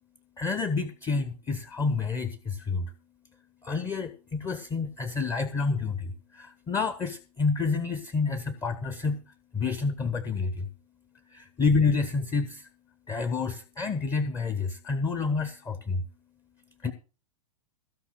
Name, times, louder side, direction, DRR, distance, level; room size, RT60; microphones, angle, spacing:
voice 1, 0.4-2.9 3.6-9.2 9.5-10.7 11.3-12.7 13.1-16.0 16.8-16.9, left 4 dB, 15° left, 10 dB, 1.3 m, -29 dB
16.0 x 5.8 x 7.8 m, 0.35 s
figure-of-eight pair, 105°, 20 cm